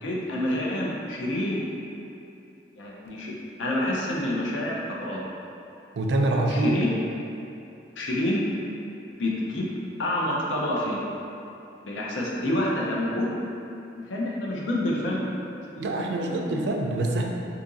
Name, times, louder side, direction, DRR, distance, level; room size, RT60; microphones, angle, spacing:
voice 1, 0.0-1.7 2.8-3.3 3.6-5.2 6.5-6.9 8.0-8.4 9.2-9.7 10.0-11.0 11.8-13.3 14.0-15.2 15.5-16.6, left 1 dB, 90° left, -3 dB, 0.6 m, -28 dB
voice 2, 5.9-6.8 15.8-17.2, right 2 dB, 70° right, 1 dB, 0.4 m, -25 dB
2.8 x 2.5 x 3.8 m, 2.8 s
head